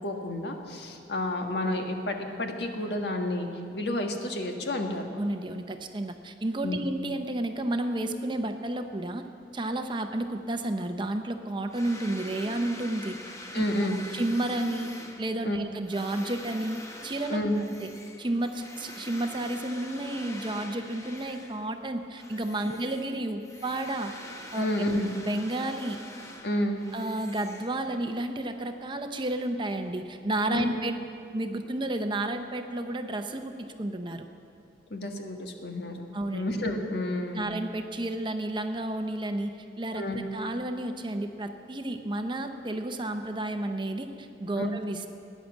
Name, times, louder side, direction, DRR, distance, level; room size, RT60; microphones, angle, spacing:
voice 1, 0.0-5.1 6.6-6.8 13.5-14.0 15.4-15.6 17.3-17.6 22.6-22.8 24.5-25.1 26.4-26.8 30.5-30.7 34.9-36.0 36.3-37.5 40.0-40.2 44.6-44.7, left 1 dB, 65° left, 3 dB, 1.5 m, -30 dB
voice 2, 5.2-9.2 9.5-13.2 13.5-13.6 14.1-17.4 17.7-17.9 18.2-24.1 24.5-24.9 25.3-26.0 26.9-31.0 31.3-34.3 36.1-36.4 37.3-45.1, right 1 dB, 25° right, 6 dB, 0.8 m, -31 dB
sound 1, 11.7-21.8 22.1-28.1, left 1 dB, 20° left, 1.2 m, -45 dB
17.5 x 10.0 x 7.3 m, 2.5 s
head